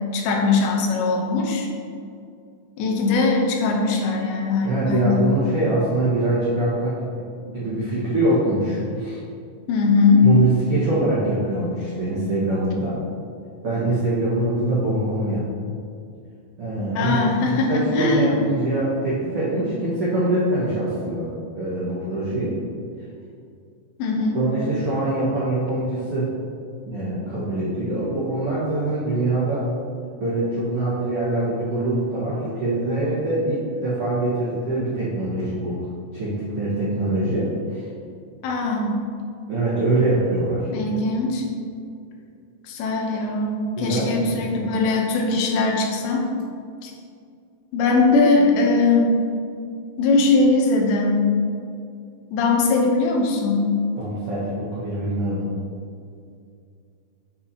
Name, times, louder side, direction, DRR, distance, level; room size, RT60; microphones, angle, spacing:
voice 1, 0.0-1.7 2.8-5.3 9.7-10.2 17.0-18.4 24.0-24.5 38.4-39.0 40.7-41.5 42.6-46.3 46.8-46.9 47.7-49.1 50.0-51.2 52.3-53.7, left 3 dB, 85° left, 0 dB, 3.0 m, -20 dB
voice 2, 4.6-7.0 7.4-9.2 10.2-12.9 13.6-15.4 16.6-22.6 24.3-26.3 26.8-29.6 30.2-35.9 36.1-37.9 39.5-40.7 43.8-44.5 54.0-55.5, right 2 dB, 75° right, -10 dB, 1.3 m, -24 dB
7.9 x 5.6 x 2.8 m, 2.4 s
omnidirectional pair, 5.0 m